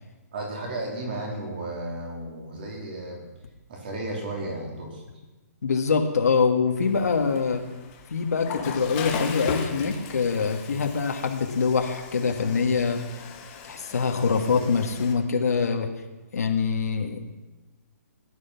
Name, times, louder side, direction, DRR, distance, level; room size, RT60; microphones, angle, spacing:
voice 1, 0.3-3.2 3.7-5.0, right 1 dB, 35° right, -1 dB, 3.8 m, -33 dB
voice 2, 5.6-7.6 8.1-13.0 13.6-15.9 16.3-17.2, left 5 dB, 65° left, 3 dB, 1.9 m, -24 dB
Water / Toilet flush, 6.8-15.1, left 6 dB, 15° left, 1.0 m, -38 dB
17.5 x 11.0 x 5.9 m, 1.2 s
hypercardioid pair, 180°, 9 cm